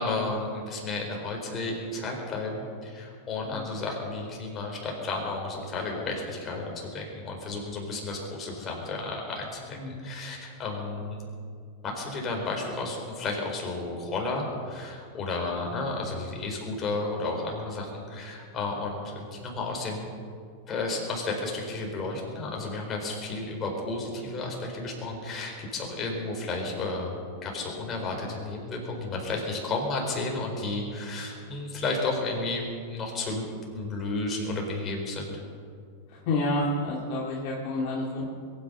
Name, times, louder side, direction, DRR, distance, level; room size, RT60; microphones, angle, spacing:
voice 1, 0.0-11.2 11.8-20.1 20.7-33.5 33.7-35.4, left 3 dB, 30° left, 0 dB, 4.5 m, -32 dB
voice 2, 9.7-10.1 36.1-38.3, left 2 dB, 50° left, -3 dB, 2.5 m, -29 dB
22.0 x 10.0 x 5.6 m, 2.3 s
hypercardioid pair, 95°, 0 cm